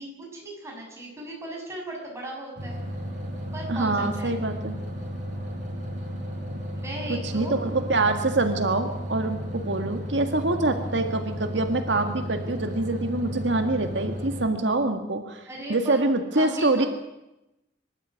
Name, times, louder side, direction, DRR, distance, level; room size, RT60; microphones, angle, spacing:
voice 1, 0.0-2.8 3.5-4.4 6.7-7.5 15.5-16.1 16.4-16.9, right 1 dB, 15° right, -1 dB, 7.1 m, -37 dB
sound 1, 2.6-14.5, equal, 45° right, 6.0 m, -34 dB
voice 2, 3.7-4.7 7.1-15.4 15.7-16.9, right 2 dB, 90° right, 5 dB, 1.8 m, -25 dB
25.0 x 12.5 x 9.4 m, 0.94 s
head